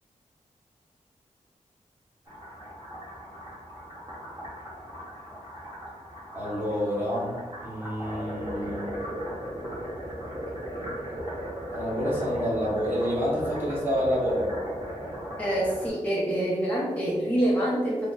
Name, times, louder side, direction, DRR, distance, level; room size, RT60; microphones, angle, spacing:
sound 1, 2.3-15.9, equal, 30° right, 1.5 m, -37 dB
voice 1, 6.3-7.3 7.6-9.4 10.5-10.9 11.7-14.5, equal, 15° right, -8 dB, 1.4 m, -29 dB
voice 2, 15.4-18.1, right 1 dB, 10° left, -6 dB, 0.6 m, -26 dB
3.5 x 2.0 x 3.9 m, 1.3 s
wide cardioid pair, 115°, 13 cm